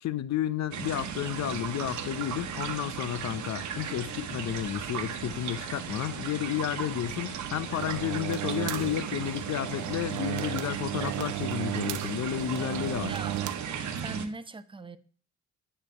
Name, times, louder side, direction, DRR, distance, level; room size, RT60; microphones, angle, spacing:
voice 1, 0.0-13.1, left 12 dB, 65° left, 0.7 m, -32 dB
sound 1, 0.7-14.3, right 8 dB, 70° right, 1.0 m, -36 dB
sound 2, 3.6-7.3, equal, ahead, 3.4 m, -54 dB
sound 3, 7.8-13.5, right 15 dB, 85° right, 0.5 m, -35 dB
voice 2, 13.1-13.4 14.0-15.0, right 2 dB, 15° right, 0.7 m, -39 dB
8.9 x 3.3 x 6.7 m
cardioid pair, 90°, 30 cm